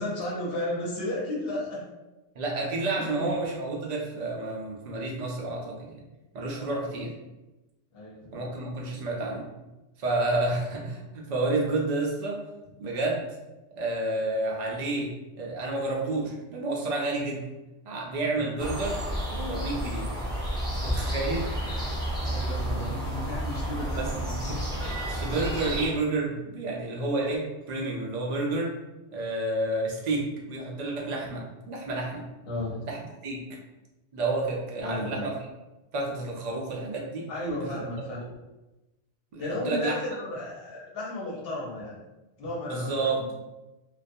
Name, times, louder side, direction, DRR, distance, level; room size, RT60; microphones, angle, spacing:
voice 1, 0.0-1.8 3.0-3.3 6.5-7.0 7.9-8.5 18.3-18.5 22.2-24.5 32.4-32.9 34.8-35.3 37.3-38.2 39.4-42.0 42.4-43.3, left 1 dB, 55° left, -5 dB, 0.9 m, -34 dB
voice 2, 2.4-6.0 6.3-7.1 8.3-9.5 10.0-12.4 12.8-13.3 13.8-15.1 15.4-17.4 17.8-19.0 19.3-20.1 20.7-21.5 22.2-22.3 24.0-24.1 25.0-28.7 29.1-32.2 32.9-33.4 34.1-35.3 35.9-37.2 38.2-38.3 39.3-40.0 42.7-43.2, right 2 dB, 70° right, -2 dB, 0.4 m, -30 dB
sound 1, 18.6-25.9, equal, 5° left, 0.4 m, -31 dB
2.3 x 2.2 x 2.6 m, 1.0 s
omnidirectional pair, 1.3 m